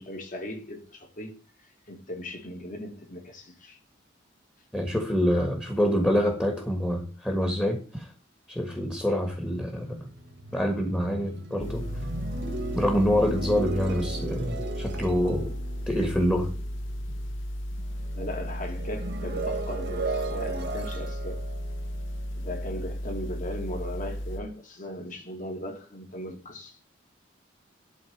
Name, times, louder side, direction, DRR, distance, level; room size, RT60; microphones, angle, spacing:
voice 1, 0.0-1.3 1.9-3.8 13.2-13.3 18.1-21.4 22.4-26.8, left 1 dB, 45° left, 2.4 m, -38 dB
voice 2, 4.7-8.1 8.5-10.1 10.5-11.8 12.7-15.5 15.9-16.5, equal, 10° left, 1.6 m, -26 dB
sound 1, 9.7-17.4 17.7-22.8, right 3 dB, 65° right, 1.6 m, -37 dB
sound 2, 11.6-24.4, equal, 90° left, 1.0 m, -34 dB
11.5 x 4.2 x 7.2 m
head